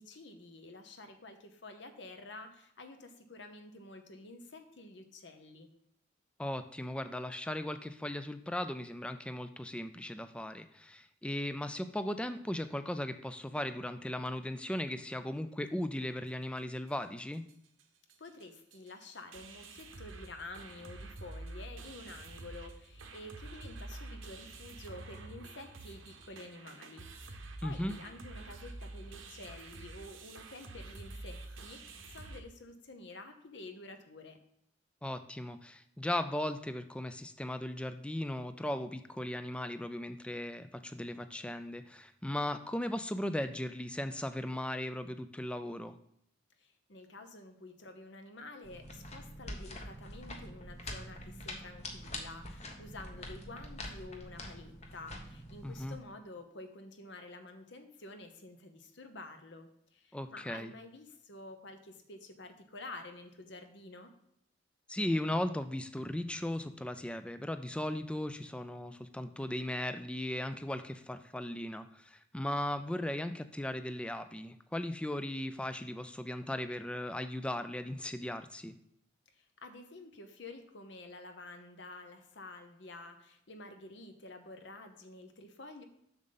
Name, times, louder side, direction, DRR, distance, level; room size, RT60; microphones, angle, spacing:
voice 1, 0.0-5.7 18.2-34.4 46.6-64.1 79.3-85.8, left 2 dB, 60° left, 7 dB, 0.9 m, -50 dB
voice 2, 6.4-17.4 27.6-27.9 35.0-46.0 55.6-56.0 60.1-60.7 64.9-78.7, left 1 dB, 5° left, 11 dB, 0.3 m, -37 dB
sound 1, 16.9-17.0 17.2-17.5 17.8-17.9 18.1-32.4, right 2 dB, 85° right, 1.0 m, -48 dB
sound 2, 48.6-56.0, left 1 dB, 35° left, 0.9 m, -45 dB
7.1 x 6.5 x 4.0 m, 0.74 s
head